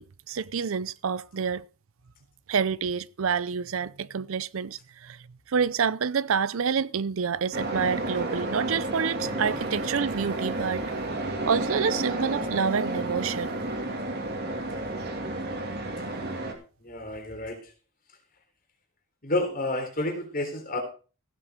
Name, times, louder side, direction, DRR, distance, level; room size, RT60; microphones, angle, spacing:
voice 1, 0.0-1.6 2.5-10.8 11.4-13.6, right 6 dB, 70° right, 0.5 m, -28 dB
sound 1, 7.5-16.5, right 1 dB, 45° right, 2.4 m, -31 dB
voice 2, 16.8-17.7 19.2-20.8, left 1 dB, 40° left, 3.5 m, -30 dB
15.5 x 7.6 x 5.1 m
head